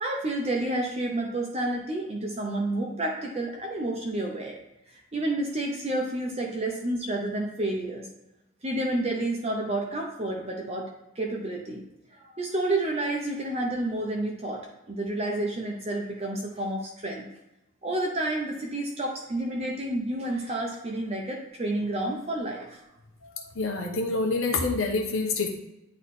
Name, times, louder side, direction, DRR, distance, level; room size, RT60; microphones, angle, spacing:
voice 1, 0.0-4.6 5.1-8.1 8.6-10.9 11.2-11.8 12.1-17.3 17.8-22.8, right 1 dB, 30° right, 0 dB, 0.8 m, -30 dB
voice 2, 23.2-25.5, left 3 dB, 80° left, 1 dB, 1.0 m, -27 dB
9.3 x 3.2 x 4.2 m, 0.91 s
head